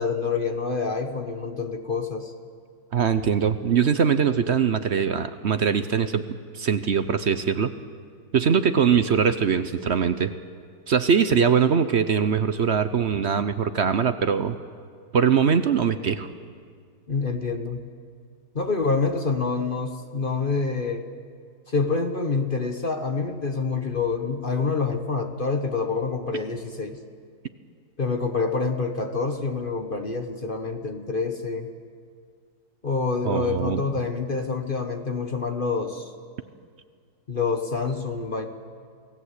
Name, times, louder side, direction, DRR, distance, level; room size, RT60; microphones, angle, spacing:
voice 1, 0.0-2.3 17.1-17.8 18.5-21.1 21.7-27.0 28.0-31.7 32.8-36.1 37.3-38.5, left 4 dB, 35° left, 6 dB, 1.3 m, -27 dB
voice 2, 2.9-6.2 6.5-7.7 8.3-10.3 10.9-14.6 15.1-16.3 33.3-33.8, right 7 dB, 50° right, 11 dB, 0.9 m, -22 dB
28.5 x 17.5 x 8.2 m, 2.1 s
omnidirectional pair, 1.7 m